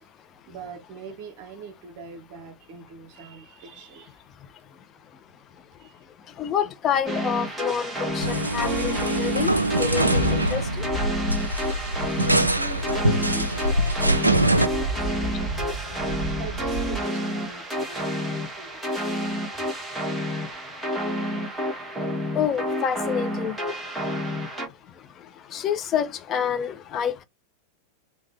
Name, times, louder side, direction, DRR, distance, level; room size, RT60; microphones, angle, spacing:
voice 1, 0.5-4.1 5.8-6.0 12.3-15.3 15.7-15.8 16.4-18.7, right 6 dB, 45° right, 0.8 m, -42 dB
voice 2, 6.4-9.5 9.8-10.6 22.4-23.6 25.5-27.2, left 8 dB, 30° left, 0.5 m, -27 dB
sound 1, 7.1-24.7, equal, 5° right, 1.2 m, -30 dB
sound 2, 8.1-17.0, right 3 dB, 85° left, 1.1 m, -34 dB
sound 3, 8.2-14.7, right 1 dB, 85° right, 0.3 m, -23 dB
3.3 x 2.2 x 3.2 m
figure-of-eight pair, 90°, 0 cm